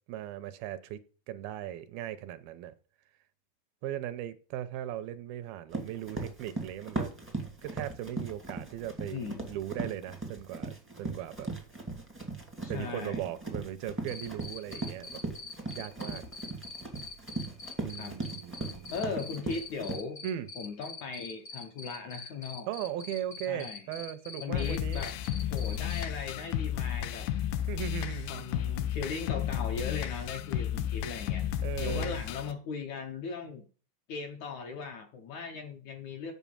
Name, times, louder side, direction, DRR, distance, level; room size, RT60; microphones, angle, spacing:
voice 1, 0.1-1.0 1.3-2.7 3.8-7.1 7.6-11.5 12.7-15.2 15.7-16.2 17.8-18.9 20.2-20.5 22.7-25.0 27.7-28.5 31.6-32.2, right 11 dB, 80° right, 2.4 m, -38 dB
Run, 5.7-20.0, right 3 dB, 10° right, 0.7 m, -38 dB
voice 2, 9.1-9.6 12.6-13.3 18.0-18.1 18.9-20.2 20.6-22.7 23.5-23.9 24.4-25.1 25.5-27.3 28.3-31.4 31.8-33.6 34.1-36.3, left 5 dB, 65° left, 1.9 m, -38 dB
Cricket, 14.1-26.0, left 3 dB, 45° left, 1.1 m, -43 dB
sound 1, 24.5-32.5, left 10 dB, 85° left, 2.7 m, -33 dB
8.3 x 5.7 x 7.1 m
omnidirectional pair, 4.4 m